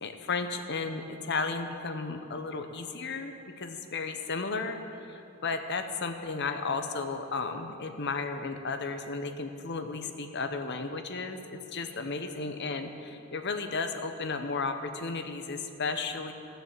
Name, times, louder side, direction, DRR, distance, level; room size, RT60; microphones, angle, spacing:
voice 1, 0.0-16.3, left 4 dB, 55° left, 6 dB, 0.9 m, -34 dB
17.0 x 6.9 x 7.4 m, 2.8 s
head